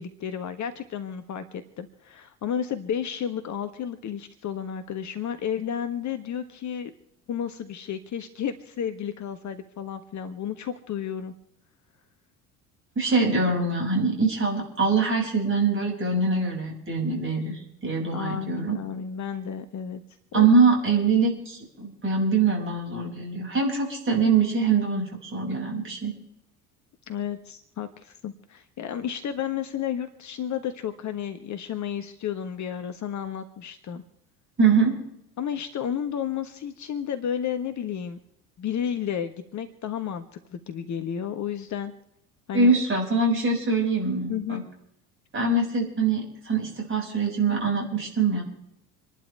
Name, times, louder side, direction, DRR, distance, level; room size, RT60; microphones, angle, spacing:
voice 1, 0.0-6.9 7.3-11.3 18.1-20.0 20.3-20.5 27.1-34.0 35.4-38.2 38.6-40.2 40.5-41.9 42.5-42.7 44.3-44.6, left 8 dB, 40° left, 9 dB, 1.4 m, -32 dB
voice 2, 12.9-18.7 20.3-26.1 34.6-35.0 42.5-44.6 45.3-48.4, right 4 dB, 25° right, 0 dB, 6.7 m, -23 dB
28.0 x 11.5 x 3.5 m, 0.77 s
figure-of-eight pair, 60°, 46 cm